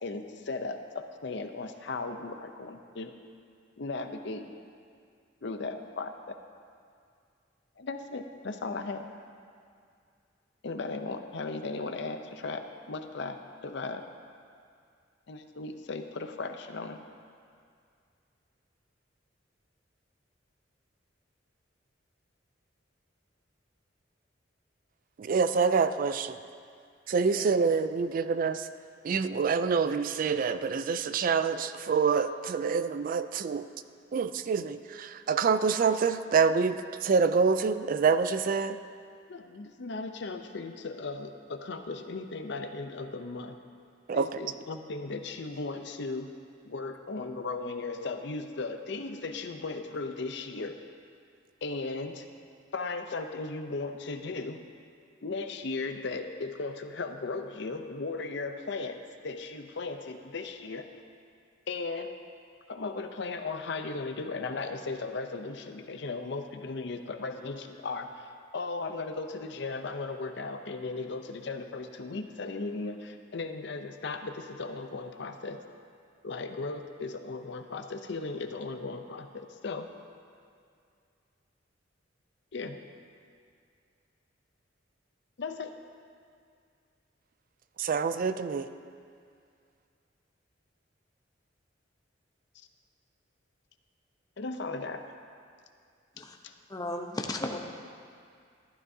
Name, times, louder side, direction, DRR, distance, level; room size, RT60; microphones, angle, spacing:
voice 1, 0.0-3.1 3.8-4.5 5.4-6.4 7.8-9.0 10.6-14.0 15.3-17.0 27.3-27.5 39.3-43.6 44.1-46.3 46.6-50.8 51.6-52.3 52.7-54.6 55.2-59.0 59.2-60.9 61.7-62.1 62.7-75.6 76.2-79.9 82.5-82.8 85.4-85.7 94.4-95.0 96.2-96.5, left 3 dB, 65° left, 7 dB, 0.6 m, -36 dB
voice 2, 25.2-26.4 27.1-28.7 29.0-33.7 34.1-38.8 44.1-44.3 87.8-88.7, right 5 dB, 50° right, 11 dB, 0.3 m, -26 dB
voice 3, 96.7-97.6, left 1 dB, 20° left, 2 dB, 0.8 m, -34 dB
14.5 x 12.0 x 2.7 m, 2.3 s
head